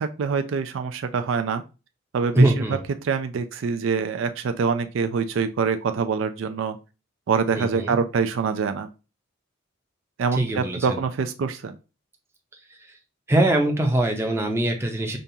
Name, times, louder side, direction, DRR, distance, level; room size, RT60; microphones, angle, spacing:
voice 1, 0.0-1.6 2.1-2.5 3.0-6.8 7.3-8.9 10.2-11.8, right 5 dB, 70° right, 8 dB, 0.4 m, -25 dB
voice 2, 2.3-2.8 7.5-8.0 10.3-11.0 12.7-12.9 13.3-15.2, right 1 dB, 10° right, 2 dB, 0.6 m, -22 dB
5.1 x 2.3 x 2.7 m, 0.30 s
head